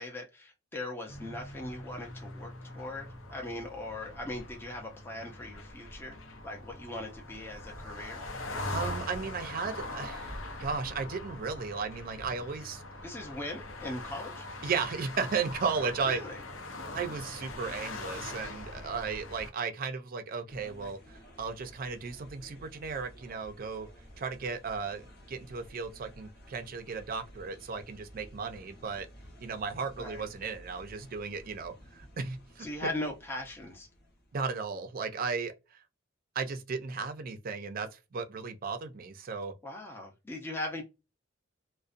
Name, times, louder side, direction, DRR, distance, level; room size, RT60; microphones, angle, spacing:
voice 1, 0.0-6.2 6.4-8.2 13.0-14.4 16.1-16.4 30.0-30.2 32.6-33.9 39.6-40.8, left 1 dB, 10° left, 0.5 m, -39 dB
sound 1, 1.1-19.5, left 2 dB, 90° left, 0.6 m, -42 dB
voice 2, 8.7-12.8 14.6-16.2 16.9-23.9 24.2-29.1 29.4-32.9 34.3-35.5 36.4-39.5, right 5 dB, 45° right, 0.4 m, -35 dB
sound 2, 20.5-34.7, equal, 55° left, 0.8 m, -53 dB
2.4 x 2.1 x 2.4 m
head